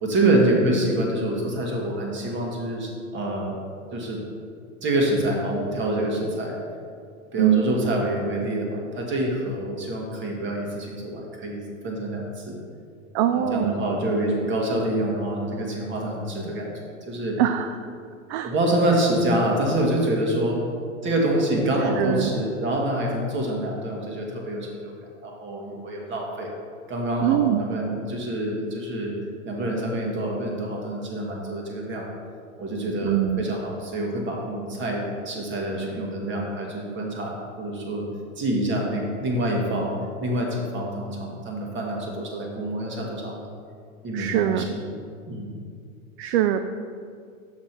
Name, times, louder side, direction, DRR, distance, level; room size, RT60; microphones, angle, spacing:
voice 1, 0.0-3.6 3.9-4.2 4.8-6.5 7.3-12.5 13.3-16.7 17.1-17.4 18.4-20.6 21.0-24.9 25.2-26.5 26.9-29.1 29.4-32.1 32.6-38.1 38.4-39.9 40.2-43.4 44.0-44.9 45.3-45.5, right 1 dB, 25° right, -1 dB, 1.7 m, -26 dB
voice 2, 13.1-13.7 17.4-17.8 18.3-18.5 22.0-22.3 27.2-27.7 33.0-33.4 44.1-44.7 46.2-46.6, right 12 dB, 50° right, 8 dB, 0.4 m, -22 dB
6.4 x 6.1 x 4.3 m, 2.2 s
hypercardioid pair, 105°, 42 cm